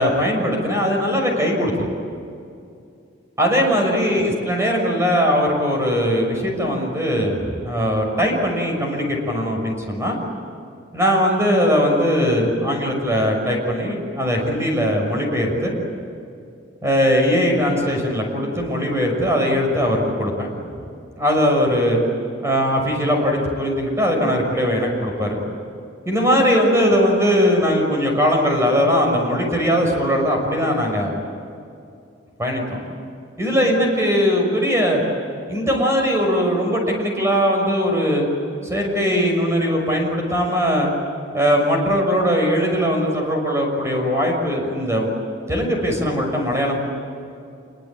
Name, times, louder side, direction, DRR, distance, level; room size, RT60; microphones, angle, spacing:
voice 1, 0.0-1.9 3.4-7.4 7.6-10.2 10.9-15.7 16.8-20.6 21.2-22.0 22.4-25.4 26.1-31.1 32.4-32.8 33.4-35.0 35.5-38.3 38.7-40.9 41.3-45.1 45.5-46.8, equal, 15° right, 1 dB, 6.1 m, -20 dB
27.0 x 23.5 x 8.8 m, 2.5 s
head